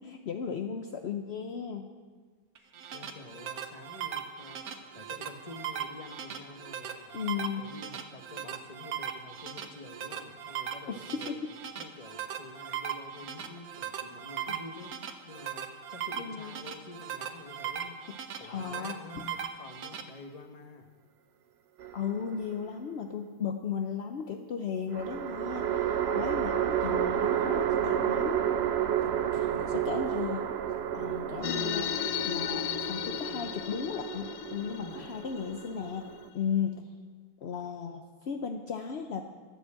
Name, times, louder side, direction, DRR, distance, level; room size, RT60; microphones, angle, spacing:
voice 1, 0.0-1.9 7.1-7.6 10.9-11.5 14.5-14.6 16.2-16.5 18.1-18.2 18.4-19.0 21.9-28.5 29.7-30.5 30.9-36.9 37.4-39.3, left 7 dB, 55° left, 5 dB, 0.7 m, -35 dB
voice 2, 2.6-11.4 11.8-18.0 18.4-20.9 28.9-30.1 34.8-35.0, left 3 dB, 25° left, 5 dB, 1.2 m, -48 dB
sound 1, 2.6-20.0, right 8 dB, 60° right, 1.3 m, -39 dB
sound 2, 21.8-22.7 24.9-36.3, right 9 dB, 90° right, 0.5 m, -31 dB
sound 3, 31.4-36.3, left 12 dB, 75° left, 1.2 m, -35 dB
13.5 x 9.8 x 7.5 m, 1.5 s
omnidirectional pair, 1.9 m